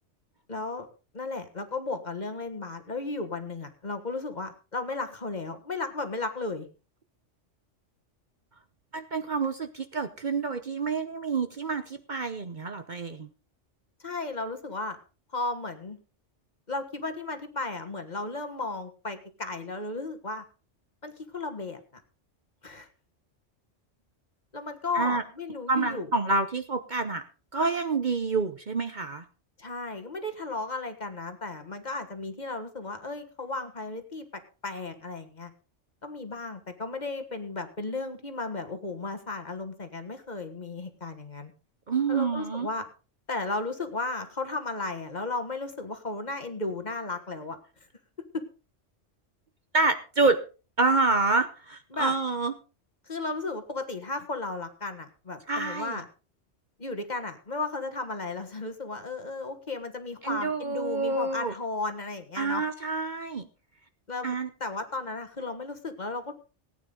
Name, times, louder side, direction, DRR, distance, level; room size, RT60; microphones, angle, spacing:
voice 1, 0.5-0.9 1.1-6.7 14.0-15.0 15.3-16.0 16.7-20.4 21.0-22.0 22.6-22.9 24.5-26.1 29.6-34.3 34.6-35.5 36.0-41.5 42.1-42.9 43.3-47.6 48.3-48.4 51.9-52.1 53.1-56.1 56.8-62.7 64.1-64.3 64.6-66.3, left 3 dB, 35° left, 7 dB, 1.6 m, -34 dB
voice 2, 8.9-13.3 24.9-25.2 25.7-27.2 27.5-29.2 41.9-42.7 49.7-50.4 50.8-52.5 55.5-56.0 60.2-61.5 62.4-63.5 64.2-64.5, right 3 dB, 45° right, 8 dB, 0.9 m, -27 dB
18.5 x 9.4 x 3.9 m, 0.34 s
omnidirectional pair, 1.2 m